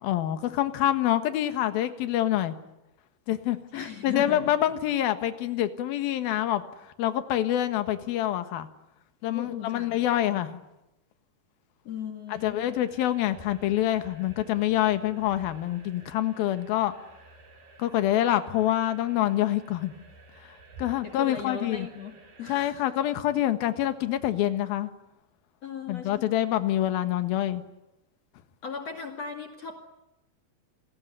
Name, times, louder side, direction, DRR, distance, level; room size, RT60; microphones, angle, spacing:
voice 1, 0.0-2.5 3.3-6.6 7.0-8.7 9.2-10.6 12.3-16.9 17.8-19.9 20.8-21.9 22.5-24.9 25.9-27.6, left 12 dB, 75° left, 10 dB, 3.3 m, -26 dB
voice 2, 3.7-4.5 9.3-10.0 11.8-12.8 21.0-22.9 25.6-26.2 28.6-29.8, left 6 dB, 45° left, 4 dB, 3.2 m, -37 dB
sound 1, 12.4-22.7, right 2 dB, 75° right, 6.8 m, -52 dB
29.5 x 21.5 x 9.6 m, 0.92 s
omnidirectional pair, 4.5 m